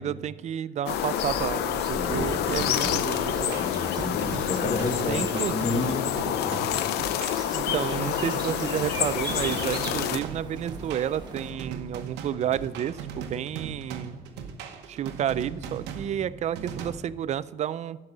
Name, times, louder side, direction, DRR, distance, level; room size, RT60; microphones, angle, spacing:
voice 1, 0.0-3.6 5.1-5.6 7.5-14.2 14.9-18.0, right 10 dB, 45° right, 17 dB, 0.4 m, -31 dB
sound 1, 0.9-10.2, left 11 dB, 80° left, 0.6 m, -28 dB
sound 2, 0.9-11.5, right 3 dB, 25° right, 1.7 m, -40 dB
voice 2, 2.0-3.0 3.5-6.8, left 2 dB, 35° left, 5 dB, 1.4 m, -32 dB
sound 3, 2.1-16.9, right 6 dB, 90° right, 1.0 m, -39 dB
12.0 x 5.4 x 6.1 m, 1.2 s
cardioid pair, 110°, 17 cm